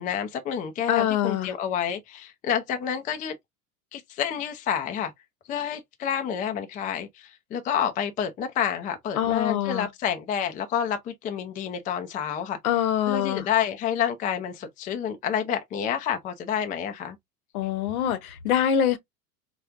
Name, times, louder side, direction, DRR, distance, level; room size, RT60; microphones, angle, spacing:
voice 1, 0.0-3.3 3.9-5.1 5.5-12.6 13.1-17.2, left 8 dB, 20° left, 0.4 m, -29 dB
voice 2, 0.9-1.5 9.2-9.9 12.6-13.5 17.5-19.0, left 10 dB, 65° left, 0.9 m, -24 dB
4.3 x 2.3 x 2.4 m
hypercardioid pair, 90°, 47 cm